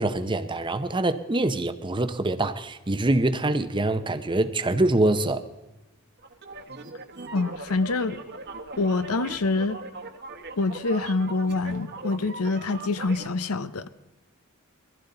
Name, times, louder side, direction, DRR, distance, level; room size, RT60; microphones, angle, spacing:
voice 1, 0.0-5.4, right 2 dB, 20° right, 0.7 m, -24 dB
sound 1, 6.2-13.3, right 3 dB, 50° right, 1.3 m, -40 dB
voice 2, 7.3-8.2 8.8-9.8 10.6-13.9, left 3 dB, 90° left, 0.8 m, -26 dB
22.5 x 15.5 x 3.9 m
head